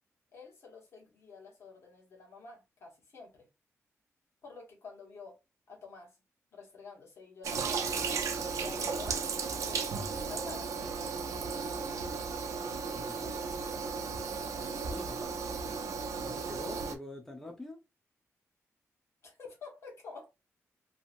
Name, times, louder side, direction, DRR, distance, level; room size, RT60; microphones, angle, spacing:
voice 1, 0.3-3.5 4.4-5.4 5.7-6.2 6.5-8.2 8.6-9.2 9.6-10.7 14.4-14.8 15.7-15.9 19.2-20.3, left 4 dB, 55° left, 1.3 m, -49 dB
Toilet flush, 7.4-17.0, right 5 dB, 75° right, 0.5 m, -35 dB
voice 2, 12.9-13.4 14.9-15.3 16.2-17.8, left 1 dB, 5° left, 0.6 m, -45 dB
2.8 x 2.7 x 2.5 m
wide cardioid pair, 120°, 5 cm